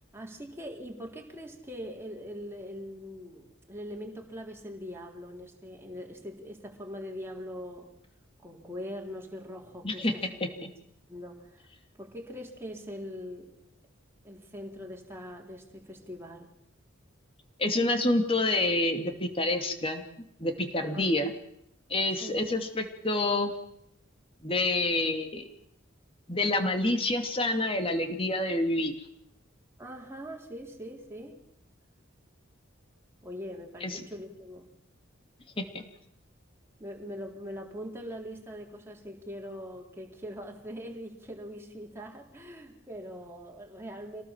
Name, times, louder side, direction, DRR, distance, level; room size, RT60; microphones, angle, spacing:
voice 1, 0.1-7.9 8.4-10.4 11.1-11.7 12.0-13.5 14.2-16.5 20.8-21.1 22.2-22.4 29.8-31.4 33.2-34.7 36.8-44.2, equal, 15° right, -1 dB, 3.9 m, -42 dB
voice 2, 9.8-10.5 17.6-20.0 20.4-21.3 21.9-23.5 24.4-25.5 26.3-28.9 33.8-34.0 35.6-35.7, left 2 dB, 30° left, 6 dB, 2.6 m, -28 dB
26.0 x 18.5 x 7.4 m, 0.77 s
head